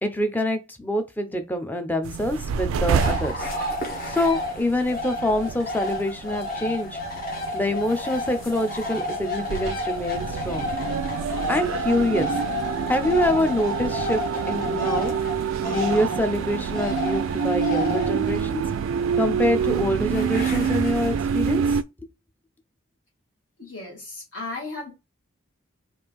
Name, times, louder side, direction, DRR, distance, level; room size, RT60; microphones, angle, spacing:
voice 1, 0.0-3.5 4.1-7.0 7.5-10.7 11.5-12.3 12.9-15.1 15.7-18.6 19.2-21.8, left 1 dB, 10° left, 0.4 m, -25 dB
sound 1, 2.0-21.8, right 7 dB, 80° right, 0.3 m, -27 dB
sound 2, 3.0-21.5, left 2 dB, 45° left, 1.1 m, -32 dB
voice 2, 23.6-24.9, left 2 dB, 60° left, 1.3 m, -35 dB
3.3 x 2.5 x 3.4 m
head